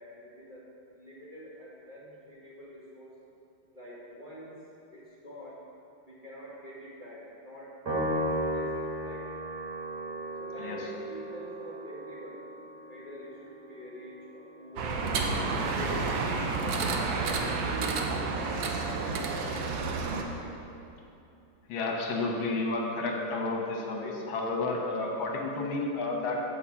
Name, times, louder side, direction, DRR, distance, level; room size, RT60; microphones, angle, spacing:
voice 1, 0.0-3.1 3.7-4.5 4.9-5.6 6.0-9.3 10.4-12.5 12.9-16.0 16.5-18.1 18.5-18.8 19.1-19.6 20.3-20.6, equal, 25° right, -8 dB, 1.9 m, -46 dB
Piano, 7.9-14.4, right 1 dB, 55° right, 3.1 m, -35 dB
sound 1, 14.8-20.2, right 4 dB, 75° right, 1.4 m, -30 dB
voice 2, 21.7-26.4, left 2 dB, 80° left, 0 dB, 1.8 m, -31 dB
8.4 x 5.0 x 7.0 m, 2.7 s
omnidirectional pair, 2.1 m